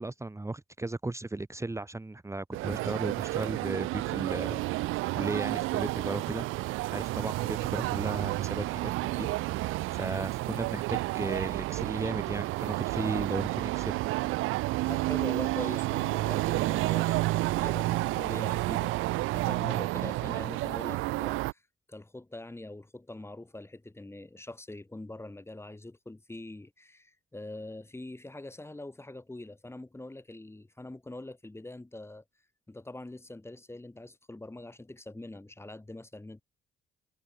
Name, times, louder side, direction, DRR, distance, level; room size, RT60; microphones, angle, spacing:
voice 1, 0.0-4.8 5.1-6.5 6.9-14.0, right 2 dB, 15° right, 1.8 m, -35 dB
sound 1, 2.5-21.5, right 19 dB, 90° right, 0.4 m, -30 dB
voice 2, 14.9-21.6 21.9-32.2 32.7-36.4, left 2 dB, 10° left, 2.7 m, -43 dB
cardioid pair, 90°, 20 cm